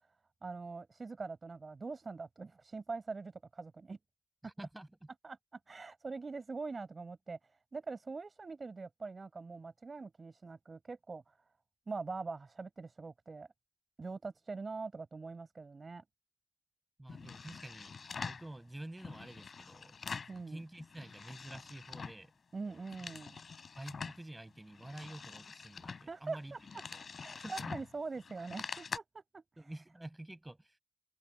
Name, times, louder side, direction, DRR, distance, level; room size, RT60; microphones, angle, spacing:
voice 1, 0.4-4.0 5.2-5.4 5.7-7.4 7.7-11.2 11.9-13.5 14.0-16.0 20.3-20.6 22.5-23.4 26.1-26.8 27.2-29.7, right 4 dB, 30° right, 6.4 m, -43 dB
voice 2, 4.4-4.9 17.0-20.0 20.3-22.3 22.7-22.8 23.8-26.5 26.9-27.0 27.4-27.7 29.6-30.8, right 1 dB, 10° right, 7.9 m, -49 dB
sound 1, 17.1-18.5 19.0-20.4 20.7-22.2 22.6-24.2 24.7-29.0, left 5 dB, 45° left, 6.4 m, -45 dB
wide cardioid pair, 130°, 0 cm